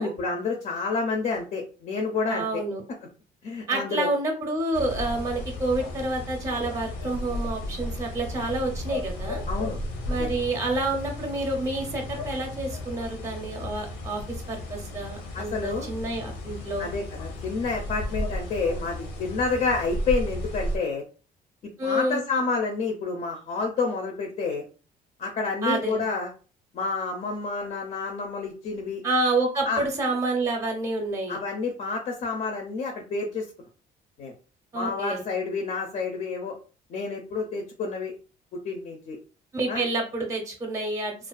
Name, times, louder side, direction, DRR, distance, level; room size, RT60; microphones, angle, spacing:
voice 1, 0.0-2.5 3.4-4.1 9.5-9.8 10.1-10.3 15.3-15.9 16.8-21.0 21.8-24.6 25.2-26.3 26.7-29.0 29.7-29.8 31.3-33.5 34.2-34.3 34.7-36.5 36.9-38.1 38.6-39.2 39.7-39.8, left 4 dB, 50° left, 2 dB, 0.5 m, -29 dB
voice 2, 2.3-2.8 3.7-9.4 10.1-14.2 14.5-16.9 21.8-22.2 25.6-26.0 29.0-31.4 34.7-35.2 39.5-41.3, right 2 dB, 20° right, 2 dB, 0.6 m, -28 dB
sound 1, 4.7-20.8, left 1 dB, 80° left, 0.7 m, -34 dB
2.4 x 2.2 x 2.2 m, 0.37 s
cardioid pair, 110°, 17 cm